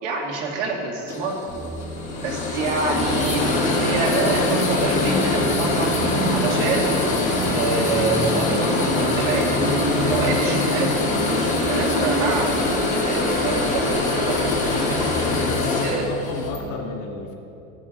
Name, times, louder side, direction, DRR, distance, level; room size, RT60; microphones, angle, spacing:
voice 1, 0.0-1.4 2.2-5.9 6.3-7.0 7.5-9.5 10.0-10.9 11.3-12.5 13.1-14.6 15.8-16.1, right 4 dB, 60° right, 0 dB, 2.0 m, -27 dB
sound 1, 1.1-16.6, left 3 dB, 20° left, 1.4 m, -24 dB
sound 2, 1.5-15.5, equal, 15° right, 0.6 m, -36 dB
Musical instrument, 3.0-16.7, right 1 dB, 45° right, 1.8 m, -28 dB
voice 2, 14.6-17.3, left 3 dB, 85° left, 0 dB, 2.4 m, -32 dB
13.5 x 10.5 x 3.8 m, 2.8 s
supercardioid pair, 175°, 41 cm